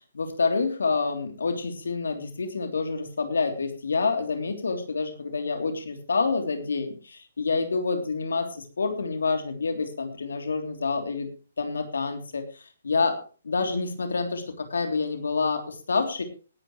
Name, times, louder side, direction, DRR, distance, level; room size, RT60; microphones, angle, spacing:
voice 1, 0.1-6.9 7.4-11.3 11.6-12.4 12.8-16.2, left 4 dB, 75° left, 6 dB, 3.1 m, -27 dB
18.5 x 11.5 x 3.2 m, 0.37 s
figure-of-eight pair, 135°, 0 cm